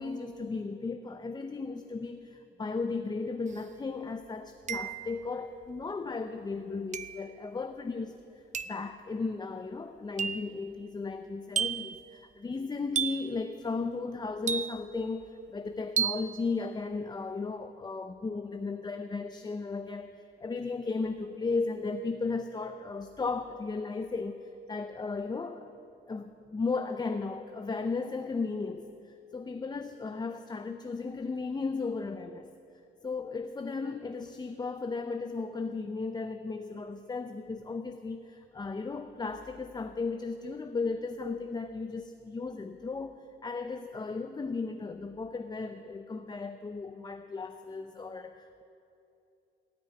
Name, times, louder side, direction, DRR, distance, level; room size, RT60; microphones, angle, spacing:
voice 1, 0.0-8.1 8.7-25.7 26.1-32.5 33.0-48.6, left 4 dB, 20° left, 8 dB, 0.6 m, -35 dB
sound 1, 3.5-3.6 4.7-5.2 6.9-7.3 8.5-8.9 10.2-10.5 11.6-12.0 13.0-13.4 14.5-15.0 16.0-16.3, right 8 dB, 40° right, 0.5 m, -32 dB
17.5 x 6.1 x 9.3 m, 2.8 s
cardioid pair, 90°, 20 cm